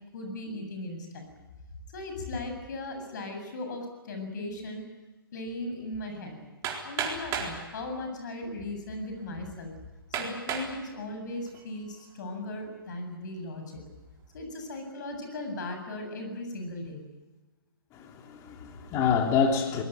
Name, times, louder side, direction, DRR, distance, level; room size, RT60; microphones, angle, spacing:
voice 1, 0.1-1.3 1.9-4.8 5.3-6.4 6.8-9.7 10.2-13.8 14.3-17.0, left 2 dB, 50° left, 5 dB, 7.8 m, -37 dB
Hammer, 6.6-7.6 8.5-8.6 9.2-9.3 10.1-10.7 11.3-11.8, right 7 dB, 25° right, 4.2 m, -33 dB
voice 2, 17.9-19.8, left 6 dB, 25° left, 3 dB, 3.4 m, -27 dB
23.0 x 20.5 x 9.4 m, 1.2 s
figure-of-eight pair, 130°, 12 cm